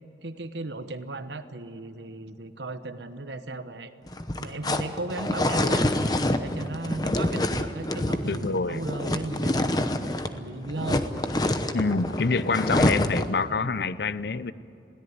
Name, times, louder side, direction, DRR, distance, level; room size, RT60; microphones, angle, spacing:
voice 1, 0.2-3.9 4.4-11.1, right 2 dB, 85° right, 10 dB, 1.1 m, -36 dB
sound 1, 4.1-10.4 10.6-13.4, left 1 dB, 20° left, 0.9 m, -26 dB
voice 2, 8.2-8.8 11.7-14.5, left 4 dB, 70° left, 16 dB, 0.6 m, -26 dB
21.5 x 17.0 x 9.5 m, 2.6 s
head